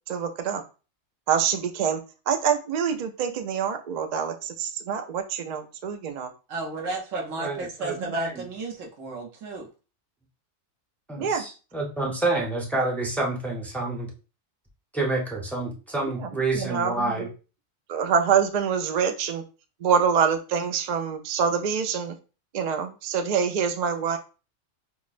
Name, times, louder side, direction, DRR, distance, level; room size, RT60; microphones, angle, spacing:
voice 1, 0.1-0.6 1.3-2.0 2.3-6.3 11.2-11.4 16.0-16.1 16.5-17.3 17.9-19.4 19.8-22.2 22.5-24.2, right 7 dB, 60° right, 6 dB, 0.4 m, -25 dB
voice 2, 6.5-9.7, right 3 dB, 90° right, 0 dB, 1.2 m, -33 dB
voice 3, 7.4-8.4 11.1-14.1 14.9-17.3, right 2 dB, ahead, -2 dB, 0.6 m, -28 dB
5.6 x 2.0 x 2.5 m, 0.34 s
omnidirectional pair, 1.3 m